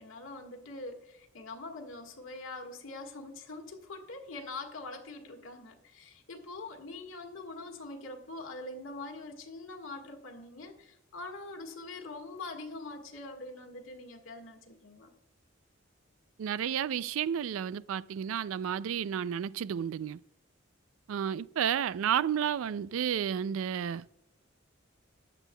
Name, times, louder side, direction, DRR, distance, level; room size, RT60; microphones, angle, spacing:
voice 1, 0.0-15.1, left 2 dB, 80° left, 1.6 m, -44 dB
voice 2, 16.4-20.2 21.1-24.3, right 8 dB, 80° right, 0.3 m, -31 dB
14.0 x 9.8 x 2.2 m
head